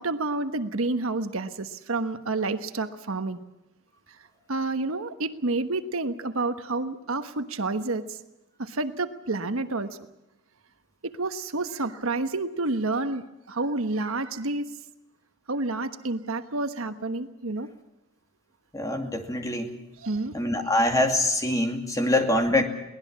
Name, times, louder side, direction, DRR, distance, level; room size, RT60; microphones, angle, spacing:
voice 1, 0.0-3.4 4.5-8.2 8.6-10.0 11.0-14.7 15.5-17.7 20.0-20.4 20.7-20.8, right 2 dB, 75° right, 9 dB, 1.2 m, -29 dB
voice 2, 18.7-19.7 20.3-22.6, left 1 dB, 15° left, 4 dB, 2.5 m, -24 dB
23.0 x 18.5 x 7.5 m, 0.95 s
head